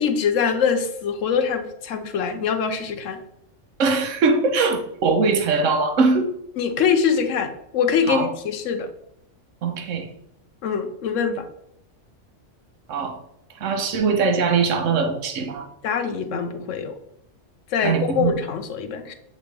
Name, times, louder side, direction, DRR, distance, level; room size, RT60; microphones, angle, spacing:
voice 1, 0.0-3.2 6.6-8.9 10.6-11.4 15.8-16.9 17.7-19.1, left 6 dB, 75° left, 7 dB, 1.1 m, -23 dB
voice 2, 3.8-6.3 8.1-8.3 9.6-10.1 12.9-13.2 13.6-15.7 17.8-18.3, right 4 dB, 80° right, 5 dB, 1.2 m, -21 dB
8.3 x 3.9 x 3.3 m, 0.75 s
omnidirectional pair, 1.3 m